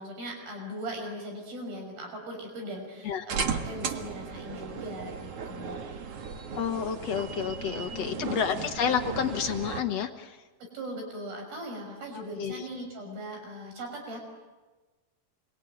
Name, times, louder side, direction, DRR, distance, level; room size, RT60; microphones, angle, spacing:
voice 1, 0.0-5.8 7.9-8.4 10.6-14.2, equal, 70° right, 2 dB, 7.9 m, -39 dB
sound 1, 3.3-9.8, right 6 dB, 50° right, 2.0 m, -36 dB
voice 2, 6.6-10.4 12.4-12.6, left 7 dB, 65° left, 6 dB, 1.8 m, -30 dB
28.5 x 22.5 x 9.3 m, 1.2 s
omnidirectional pair, 4.3 m